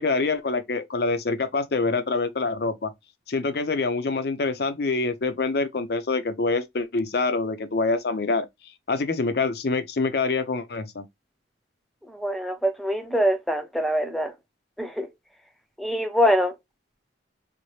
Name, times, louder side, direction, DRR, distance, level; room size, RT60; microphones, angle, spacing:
voice 1, 0.0-2.9 3.3-8.5 8.9-11.1, left 3 dB, 55° left, 0.5 m, -25 dB
voice 2, 12.1-14.3 14.8-15.1 15.8-16.5, equal, ahead, 0.6 m, -24 dB
4.2 x 2.1 x 3.1 m
head